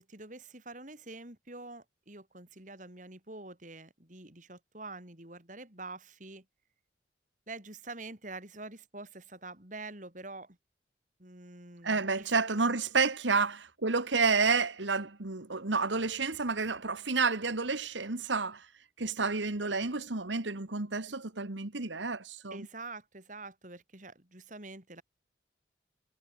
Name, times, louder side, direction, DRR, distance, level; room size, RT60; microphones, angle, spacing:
voice 1, 0.0-6.4 7.5-10.6 11.2-12.3 13.3-13.5 22.5-25.0, right 3 dB, 40° right, 3.9 m, -46 dB
voice 2, 11.8-13.6 13.8-18.6 19.0-22.7, right 4 dB, 80° right, 1.7 m, -30 dB
head